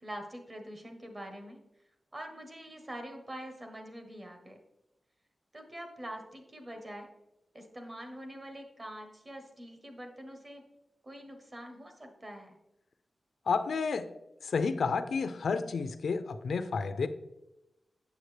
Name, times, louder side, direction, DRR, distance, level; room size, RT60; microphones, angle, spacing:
voice 1, 0.0-1.6 2.1-4.6 5.5-7.1 7.5-10.6 11.0-12.6, equal, 25° right, 4 dB, 1.1 m, -45 dB
voice 2, 13.5-14.1 14.4-17.1, left 5 dB, 75° left, 10 dB, 0.5 m, -30 dB
7.9 x 7.0 x 3.2 m, 0.89 s
wide cardioid pair, 155°, 0 cm